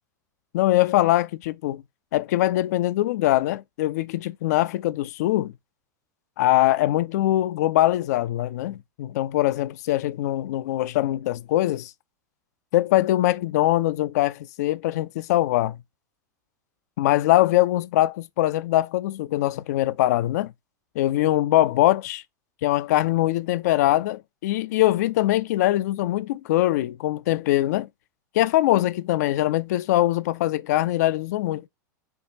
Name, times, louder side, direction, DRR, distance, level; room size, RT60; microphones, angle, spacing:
voice 1, 0.5-1.8 2.1-5.5 6.4-11.9 12.7-15.8 17.0-20.5 21.0-22.2 22.6-27.9 28.3-31.7, left 15 dB, 60° left, 0.3 m, -22 dB
4.5 x 2.3 x 3.9 m
figure-of-eight pair, 90°, 10 cm